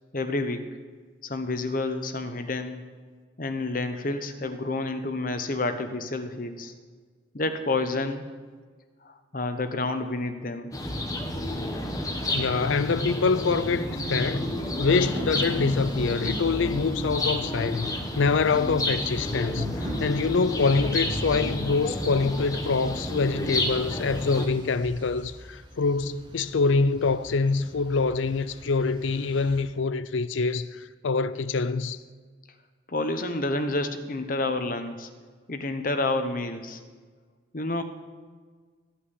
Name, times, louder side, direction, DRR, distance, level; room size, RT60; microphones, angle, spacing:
voice 1, 0.1-0.7 1.2-2.8 3.4-6.7 7.3-8.3 9.0-10.7 32.9-35.1 35.5-36.8 37.5-37.8, left 2 dB, 45° left, 0.9 m, -29 dB
sound 1, 10.7-24.5, left 1 dB, 15° left, 1.1 m, -31 dB
voice 2, 12.3-14.5 14.8-32.0, left 4 dB, 75° left, 0.5 m, -25 dB
sound 2, 13.9-23.3, right 1 dB, 65° right, 2.6 m, -39 dB
sound 3, 15.4-29.6, right 1 dB, 25° right, 1.4 m, -46 dB
14.0 x 5.8 x 9.7 m
head